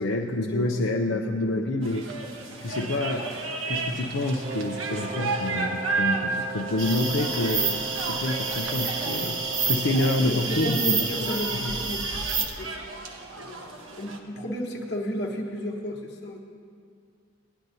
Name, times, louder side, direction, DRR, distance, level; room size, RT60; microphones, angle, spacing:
voice 1, 0.0-2.0 2.6-3.3 3.7-11.3 11.6-11.7, left 2 dB, 80° left, 2 dB, 0.6 m, -28 dB
voice 2, 0.5-1.9 9.8-9.9 10.3-12.1 12.6-12.8 13.4-13.7 13.9-16.4, equal, 55° left, -1 dB, 1.0 m, -33 dB
sound 1, 1.8-14.2, right 3 dB, 90° right, 1.2 m, -34 dB
Wind instrument woodwind instrument, 4.4-10.1, right 4 dB, 40° right, 0.5 m, -37 dB
sound 2, 6.8-12.5, right 4 dB, 75° right, 1.2 m, -29 dB
18.5 x 10.5 x 2.7 m, 2.3 s
head